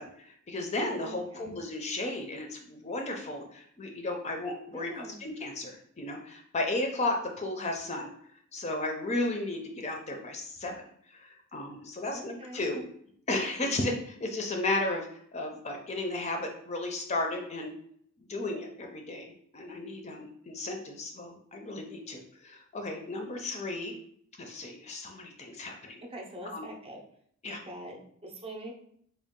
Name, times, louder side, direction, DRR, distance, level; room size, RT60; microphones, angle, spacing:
voice 1, 0.0-8.1 8.5-12.8 13.3-17.7 18.2-23.9 24.4-26.0 26.5-26.6 27.4-27.6, left 2 dB, 30° left, 3 dB, 0.5 m, -34 dB
voice 2, 1.0-1.6 4.7-5.2 12.1-12.8 26.1-27.0 27.4-28.7, right 1 dB, 25° right, 0 dB, 0.6 m, -44 dB
3.6 x 2.3 x 3.6 m, 0.64 s
head